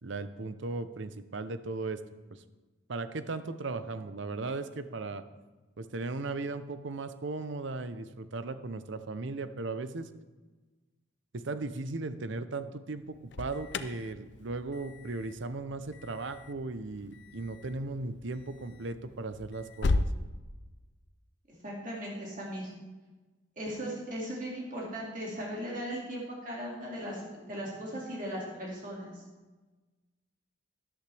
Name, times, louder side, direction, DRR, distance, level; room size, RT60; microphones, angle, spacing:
voice 1, 0.0-2.0 2.3-2.4 2.9-5.2 5.8-10.1 11.3-20.1, right 3 dB, 65° right, 11 dB, 0.7 m, -37 dB
Alarm, 13.0-20.1, left 2 dB, 55° left, 0.5 m, -37 dB
voice 2, 21.5-22.7 23.6-29.2, equal, 40° right, -4 dB, 2.3 m, -38 dB
13.0 x 11.5 x 3.4 m, 1.2 s
head